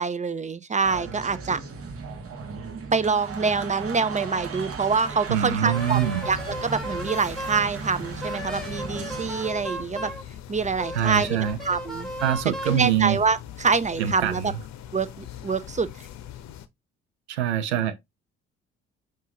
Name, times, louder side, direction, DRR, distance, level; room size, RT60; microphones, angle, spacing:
voice 1, 0.0-1.6 2.9-10.1 10.5-11.4 11.6-12.1 12.7-14.5 14.9-15.9, right 5 dB, 20° right, 0.5 m, -25 dB
sound 1, 0.8-9.5, right 5 dB, 45° right, 1.4 m, -36 dB
voice 2, 5.3-6.2 10.9-11.6 12.2-13.2 14.0-14.6 17.3-18.0, right 10 dB, 85° right, 0.5 m, -24 dB
sound 2, 5.7-16.7, left 10 dB, 55° left, 0.7 m, -42 dB
Wind instrument woodwind instrument, 5.7-7.7 8.2-10.2 10.8-12.8, right 1 dB, ahead, 1.5 m, -35 dB
5.5 x 2.5 x 3.8 m
hypercardioid pair, 50°, 33 cm